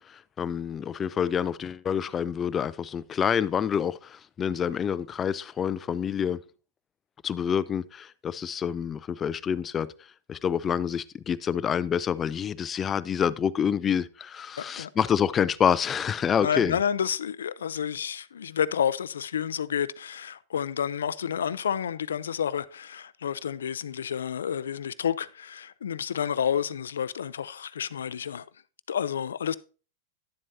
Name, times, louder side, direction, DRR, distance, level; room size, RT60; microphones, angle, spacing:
voice 1, 0.0-6.4 7.2-9.9 10.3-16.8, left 8 dB, 25° left, 0.4 m, -27 dB
voice 2, 14.6-14.9 16.4-28.4 28.9-29.6, left 8 dB, 85° left, 0.4 m, -30 dB
10.5 x 7.5 x 2.7 m
hypercardioid pair, 110°, 0 cm